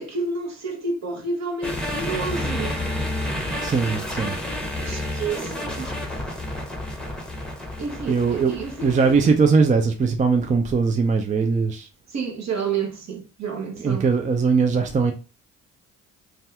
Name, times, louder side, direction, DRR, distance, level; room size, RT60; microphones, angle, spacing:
voice 1, 0.0-2.8 4.8-6.3 7.8-9.3 12.1-14.1, right 4 dB, 45° right, 1.0 m, -30 dB
sound 1, 1.6-9.3, left 1 dB, ahead, 0.9 m, -30 dB
voice 2, 3.6-4.4 8.1-8.5 8.8-11.9 13.8-15.1, right 5 dB, 20° right, 0.4 m, -20 dB
2.7 x 2.3 x 3.4 m
hypercardioid pair, 50°, 37 cm